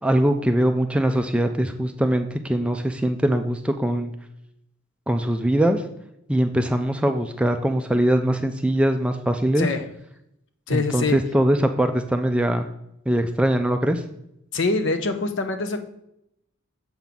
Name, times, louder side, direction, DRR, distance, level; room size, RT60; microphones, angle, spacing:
voice 1, 0.0-4.1 5.1-5.8 6.3-9.7 10.7-12.7 13.1-14.0, right 1 dB, 5° right, 6 dB, 0.3 m, -22 dB
voice 2, 10.7-11.2 14.5-15.8, left 3 dB, 60° left, 8 dB, 0.7 m, -24 dB
7.1 x 3.6 x 5.8 m, 0.78 s
head